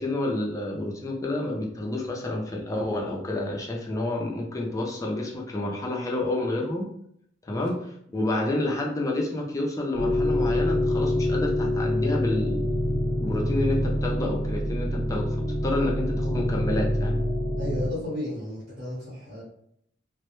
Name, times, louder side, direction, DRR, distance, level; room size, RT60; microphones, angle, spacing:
voice 1, 0.0-6.9 7.4-7.7 8.1-12.8 13.2-15.4 15.6-17.2, left 2 dB, 15° left, 0 dB, 0.3 m, -29 dB
voice 2, 7.5-7.8 17.6-19.4, left 1 dB, 50° right, -6 dB, 0.8 m, -34 dB
sound 1, 9.9-17.9, left 1 dB, 90° right, 0.5 m, -26 dB
2.1 x 2.0 x 2.9 m, 0.70 s
head